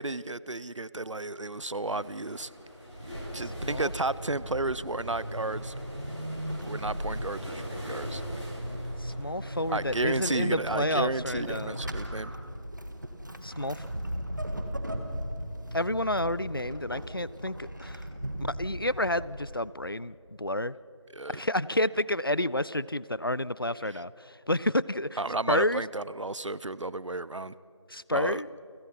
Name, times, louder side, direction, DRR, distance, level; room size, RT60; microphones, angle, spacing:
voice 1, 0.0-2.5 3.3-5.7 6.6-8.2 9.7-12.3 21.1-21.4 23.8-24.0 25.2-27.5 28.1-28.4, right 2 dB, 80° right, 19 dB, 0.7 m, -32 dB
Waves surf, 1.7-10.4, equal, ahead, 2.5 m, -44 dB
Vehicle / Accelerating revving vroom / Squeak, 2.6-19.8, equal, 40° right, 1.7 m, -37 dB
voice 2, 9.0-11.8 13.4-13.9 15.7-18.0 18.4-20.7 21.3-25.2 25.5-25.8 27.9-28.5, left 1 dB, 50° left, 20 dB, 0.4 m, -30 dB
29.0 x 17.0 x 5.8 m, 2.6 s
figure-of-eight pair, 175°, 15 cm